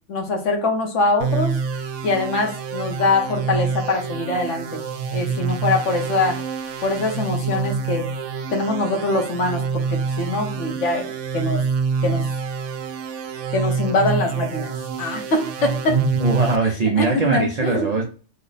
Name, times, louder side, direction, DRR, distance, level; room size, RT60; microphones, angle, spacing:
voice 1, 0.0-1.6 2.0-4.8 5.1-6.4 6.8-8.1 8.5-11.7 12.0-12.3 13.5-16.0 17.0-17.9, left 2 dB, 80° left, 2 dB, 1.3 m, -23 dB
sound 1, 1.2-16.6, right 5 dB, 85° right, 0.9 m, -26 dB
voice 2, 15.9-18.0, right 3 dB, 45° right, 1 dB, 0.5 m, -21 dB
3.2 x 2.1 x 3.9 m, 0.38 s
omnidirectional pair, 1.2 m